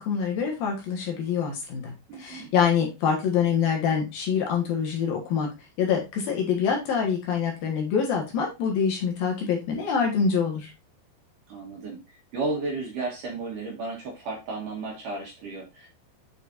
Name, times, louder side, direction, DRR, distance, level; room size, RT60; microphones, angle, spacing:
voice 1, 0.0-5.5 5.8-10.7, left 6 dB, 65° left, 1 dB, 2.9 m, -25 dB
voice 2, 2.1-2.5 11.5-15.9, right 3 dB, 60° right, -1 dB, 2.7 m, -33 dB
9.2 x 5.0 x 2.6 m, 0.25 s
omnidirectional pair, 5.1 m